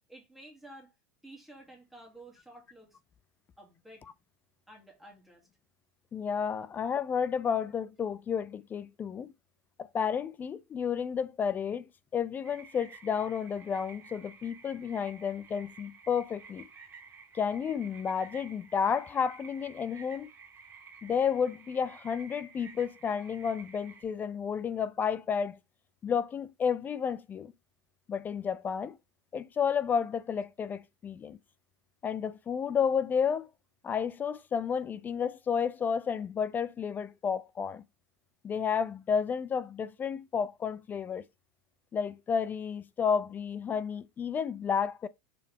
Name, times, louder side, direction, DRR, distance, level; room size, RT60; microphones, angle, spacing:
voice 1, 0.1-0.9 1.2-3.0 3.6-4.1 4.7-5.5, right 1 dB, ahead, 2.5 m, -52 dB
voice 2, 6.1-9.3 9.8-16.7 17.3-20.3 21.0-25.6 26.0-27.5 28.1-29.0 29.3-31.4 32.0-33.5 33.8-37.8 38.4-41.2 41.9-45.1, left 7 dB, 20° left, 0.3 m, -31 dB
sound 1, 12.4-24.0, right 5 dB, 25° right, 2.6 m, -52 dB
6.8 x 4.1 x 3.4 m
supercardioid pair, 150°, 9 cm